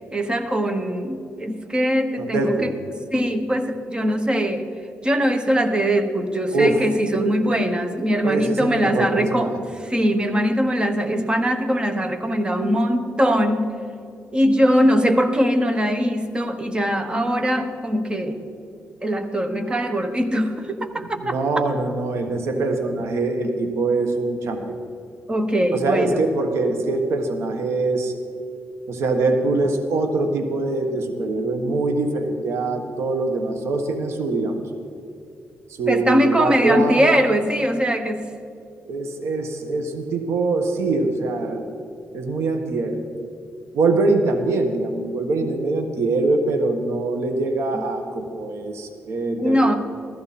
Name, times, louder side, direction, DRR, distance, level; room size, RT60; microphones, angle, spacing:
voice 1, 0.1-2.7 3.1-4.7 5.0-9.5 9.8-13.7 14.3-18.4 19.0-21.4 25.3-26.3 31.7-31.8 35.9-38.3 42.3-42.4 47.7-47.9 49.4-49.7, equal, 20° right, 8 dB, 1.2 m, -21 dB
voice 2, 2.2-2.7 6.5-6.8 8.2-9.6 21.2-24.7 25.7-28.1 28.9-34.6 35.7-37.1 38.9-41.6 42.1-43.0 43.7-49.6, right 3 dB, 80° right, 5 dB, 1.5 m, -23 dB
15.0 x 14.0 x 4.3 m, 2.5 s
cardioid pair, 95°, 5 cm